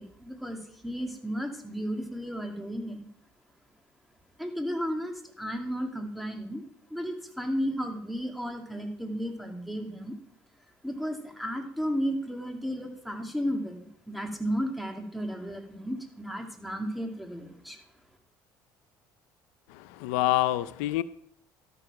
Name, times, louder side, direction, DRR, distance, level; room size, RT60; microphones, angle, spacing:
voice 1, 0.0-3.1 4.4-6.6 6.9-10.2 10.8-17.8, equal, ahead, 3 dB, 2.4 m, -33 dB
voice 2, 19.7-21.0, left 16 dB, 90° left, 16 dB, 0.5 m, -27 dB
12.5 x 6.9 x 5.8 m, 0.66 s
supercardioid pair, 85°, 9 cm